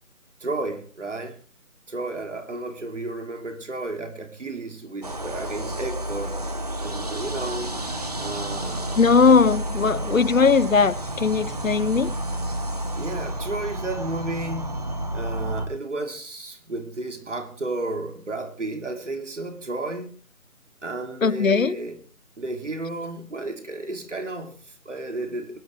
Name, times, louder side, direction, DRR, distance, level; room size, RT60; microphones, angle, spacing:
voice 1, 0.4-1.4 1.9-6.4 6.8-7.8 8.2-9.1 12.9-14.9 15.1-20.2 20.8-22.0 22.4-25.6, right 2 dB, 55° right, 2.9 m, -32 dB
sound 1, 5.0-15.7, right 1 dB, 25° right, 1.3 m, -30 dB
voice 2, 8.9-12.1 21.2-21.8, left 5 dB, 65° left, 0.9 m, -19 dB
23.0 x 11.5 x 3.3 m
figure-of-eight pair, 165°, 43 cm